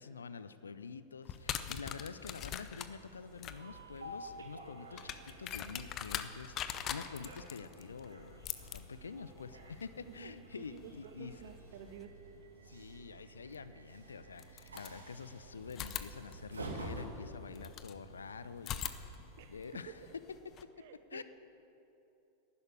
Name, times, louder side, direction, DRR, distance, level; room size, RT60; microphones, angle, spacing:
voice 1, 0.0-11.3 12.6-19.2 19.5-20.0 21.1-21.2, left 5 dB, 70° left, 14 dB, 0.6 m, -47 dB
sound 1, 1.2-12.0 13.5-13.6 14.3-15.3 15.7-18.0 18.6-20.6, left 9 dB, 30° left, 0.8 m, -44 dB
Train, 2.6-19.8, right 2 dB, 75° right, 2.2 m, -51 dB
voice 2, 10.0-12.1 13.2-13.3 19.4-20.1 20.8-21.2, right 8 dB, 50° right, 10 dB, 1.1 m, -52 dB
11.5 x 11.0 x 9.8 m, 3.0 s
figure-of-eight pair, 90°, 0 cm